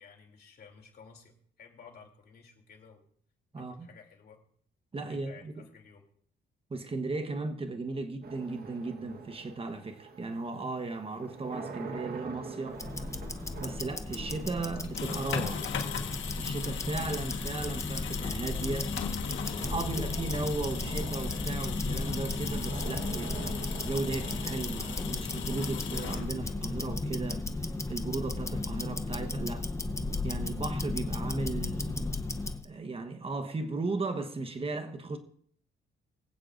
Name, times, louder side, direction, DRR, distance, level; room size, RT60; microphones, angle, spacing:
voice 1, 0.0-3.0 3.5-4.4 5.0-6.1, left 6 dB, 55° left, 3.2 m, -54 dB
voice 2, 3.5-3.9 4.9-5.6 6.7-12.8 13.6-15.7 16.3-18.9 19.6-29.7 30.2-32.0 32.6-35.2, right 3 dB, 30° right, 1.2 m, -36 dB
sound 1, 8.2-27.3, right 4 dB, 50° right, 1.5 m, -46 dB
Tick-tock, 12.7-32.7, left 2 dB, 15° left, 0.8 m, -35 dB
sound 2, 14.8-26.7, left 8 dB, 75° left, 1.5 m, -39 dB
23.5 x 8.4 x 2.6 m
cardioid pair, 90°, 20 cm